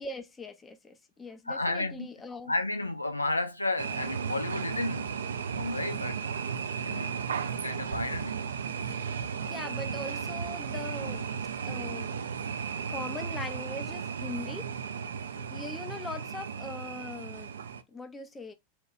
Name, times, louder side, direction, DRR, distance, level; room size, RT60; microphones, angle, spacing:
voice 1, 0.0-2.5 9.4-11.2 11.6-12.2 12.9-14.7 15.4-17.5 17.9-18.5, left 3 dB, 15° left, 0.4 m, -41 dB
voice 2, 1.5-2.1 2.5-5.2 5.5-6.2 6.8-8.3, left 2 dB, 85° left, 0.4 m, -32 dB
sound 1, 3.8-17.8, right 6 dB, 65° right, 0.3 m, -35 dB
2.8 x 2.2 x 3.1 m
figure-of-eight pair, 90°, 0 cm